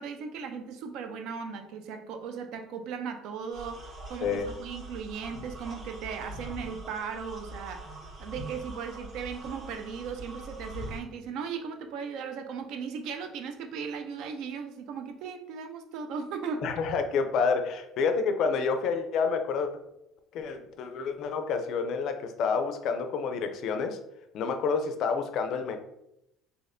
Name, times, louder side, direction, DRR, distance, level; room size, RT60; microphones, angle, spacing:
voice 1, 0.0-7.9 8.2-16.7, right 6 dB, 60° right, 6 dB, 0.4 m, -37 dB
sound 1, 3.5-11.0, right 1 dB, 25° right, 1.5 m, -43 dB
voice 2, 16.6-19.7 20.3-24.0 24.3-25.8, left 5 dB, 50° left, 6 dB, 0.4 m, -28 dB
4.1 x 2.8 x 2.6 m, 0.84 s
cardioid pair, 170°, 0 cm